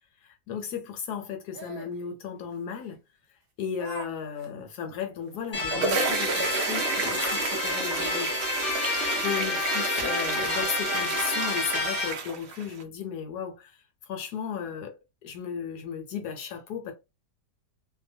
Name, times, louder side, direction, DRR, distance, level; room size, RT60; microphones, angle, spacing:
voice 1, 0.2-3.0 3.3-8.3 9.2-15.0 15.2-16.9, left 7 dB, 75° left, 1.1 m, -35 dB
Laughter, 1.5-2.0 2.8-2.9 3.8-4.1 4.4-4.5 5.0-5.1 5.4-5.6 7.5-7.6 7.9-8.0 8.9-9.2 9.6-11.2, right 5 dB, 60° right, 1.1 m, -43 dB
sound 1, 5.3-12.8, right 4 dB, 85° right, 0.5 m, -30 dB
sound 2, 5.5-12.1, left 3 dB, 45° left, 0.5 m, -30 dB
2.7 x 2.1 x 2.6 m
omnidirectional pair, 1.8 m